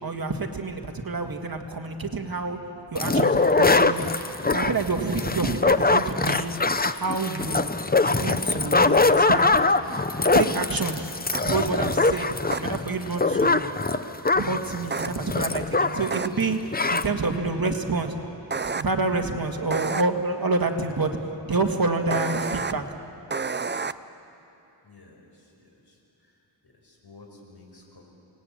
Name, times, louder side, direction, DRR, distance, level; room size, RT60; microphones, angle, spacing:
voice 1, 0.0-2.6 2.9-4.1 4.5-6.5 6.9-7.7 8.1-9.5 10.3-11.1 11.5-12.3 12.6-13.6 14.3-16.6 16.9-18.2 18.7-21.1 21.5-22.8, right 3 dB, 50° right, 4 dB, 1.9 m, -27 dB
sound 1, 3.0-16.2 16.4-16.5 16.7-17.1, left 3 dB, 20° left, 0.7 m, -22 dB
sound 2, 11.3-11.4 12.5-12.6 14.9-15.1 16.1-16.3 18.5-18.8 19.7-20.0 22.1-22.7 23.3-23.9, right 4 dB, 25° right, 0.5 m, -28 dB
voice 2, 24.8-26.3 26.6-28.0, left 3 dB, 60° left, 0 dB, 5.4 m, -52 dB
28.5 x 19.5 x 8.7 m, 2.8 s
wide cardioid pair, 105°, 45 cm